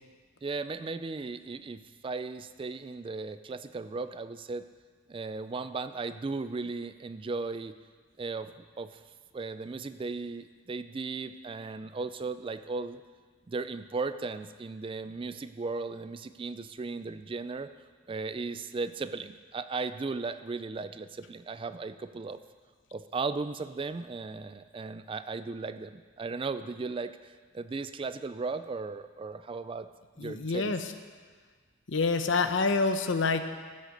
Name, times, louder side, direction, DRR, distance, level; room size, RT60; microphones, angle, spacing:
voice 1, 0.4-4.7 5.1-7.7 8.2-8.5 8.8-9.0 9.3-13.0 13.5-17.7 18.1-22.4 22.9-29.9 30.2-30.7, right 4 dB, 25° right, 12 dB, 0.3 m, -36 dB
voice 2, 30.2-30.9 31.9-33.4, left 4 dB, 65° left, 8 dB, 0.8 m, -27 dB
15.0 x 6.5 x 6.6 m, 1.5 s
head